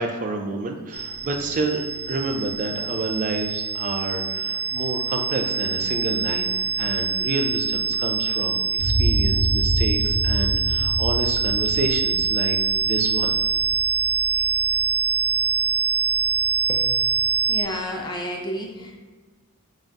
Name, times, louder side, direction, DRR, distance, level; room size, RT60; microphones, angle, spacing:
voice 1, 0.0-13.4 14.4-14.5, right 2 dB, 35° right, 4 dB, 0.4 m, -29 dB
sound 1, 0.9-17.6, right 6 dB, 85° right, 0.8 m, -24 dB
sound 2, 8.8-13.1, equal, ahead, 0.9 m, -25 dB
voice 2, 16.7-17.1 17.5-18.9, equal, 20° left, 0 dB, 0.5 m, -31 dB
3.9 x 3.3 x 2.4 m, 1.3 s
head